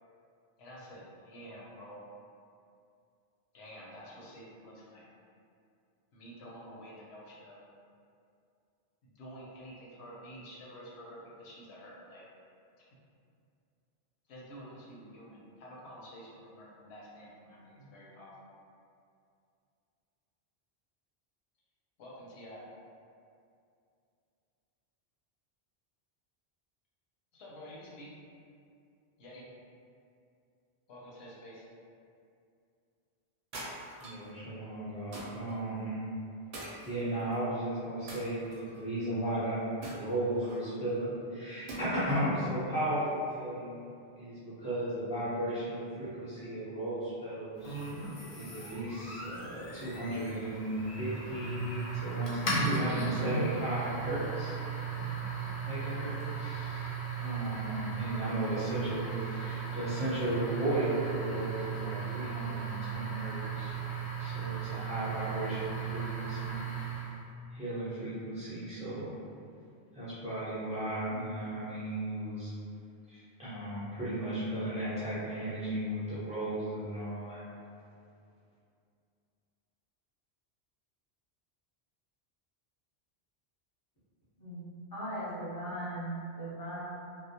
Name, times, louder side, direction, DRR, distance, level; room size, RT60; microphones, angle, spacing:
voice 1, 0.6-2.0 3.5-5.0 6.1-7.6 9.0-12.2 12.8-12.9 14.3-18.3 22.0-22.6 27.3-28.1 29.2-29.5 30.9-31.7, equal, 90° left, -5 dB, 0.9 m, -49 dB
sound 1, 33.5-34.3 35.1-35.6 36.5-37.4 38.1-38.8 39.8-40.7 41.7-42.2, right 1 dB, 80° right, 0.8 m, -44 dB
voice 2, 34.0-36.0 36.5-39.6 39.9-43.9 44.2-47.8 48.3-54.6 55.6-56.9 57.2-63.8 64.2-66.6 67.5-69.1 69.9-72.5 73.1-77.4, right 1 dB, 10° right, -12 dB, 0.6 m, -35 dB
sound 2, 47.6-67.2, right 5 dB, 45° left, 0.4 m, -36 dB
voice 3, 84.9-86.8, right 1 dB, 20° left, -11 dB, 0.8 m, -38 dB
2.2 x 2.0 x 2.7 m, 2.4 s
omnidirectional pair, 1.1 m